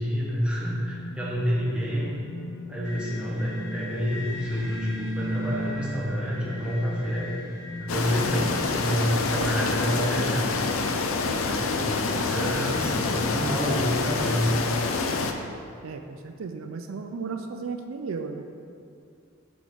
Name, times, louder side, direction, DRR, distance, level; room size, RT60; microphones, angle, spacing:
voice 1, 0.0-2.2 2.7-7.3 7.8-10.7 11.4-14.6, equal, 5° right, -6 dB, 1.1 m, -28 dB
sound 1, 0.6-8.5, equal, 15° left, 1.6 m, -40 dB
sound 2, 2.8-7.9, equal, 60° left, 1.4 m, -35 dB
sound 3, 7.9-15.3, left 4 dB, 80° left, 0.5 m, -27 dB
voice 2, 15.8-18.4, right 4 dB, 75° right, 6 dB, 0.4 m, -34 dB
5.8 x 4.8 x 5.1 m, 2.4 s
head